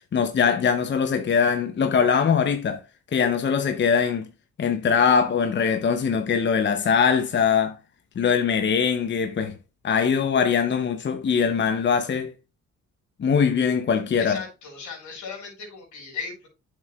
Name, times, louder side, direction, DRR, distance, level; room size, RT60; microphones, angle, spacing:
voice 1, 0.1-2.8 3.1-4.3 4.6-7.8 8.2-9.5 9.8-12.3 13.2-14.4, left 6 dB, 40° left, 0.7 m, -22 dB
voice 2, 14.2-16.5, left 5 dB, 75° left, 4.6 m, -37 dB
8.8 x 6.6 x 2.3 m
cardioid pair, 90°, 30 cm